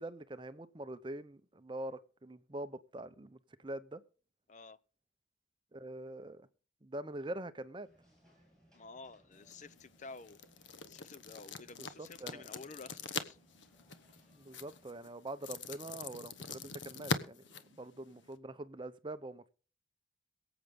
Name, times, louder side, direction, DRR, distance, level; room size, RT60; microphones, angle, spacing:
voice 1, 0.0-4.0 5.7-6.5 6.8-7.9 12.0-12.4 14.3-17.4 17.7-19.5, right 1 dB, 25° right, 0.6 m, -44 dB
sound 1, 7.8-14.9, equal, 5° left, 7.2 m, -67 dB
voice 2, 8.7-10.4 10.9-13.4, left 3 dB, 35° left, 0.5 m, -51 dB
sound 2, 9.3-18.4, left 4 dB, 65° left, 1.1 m, -43 dB
23.0 x 8.0 x 3.6 m
head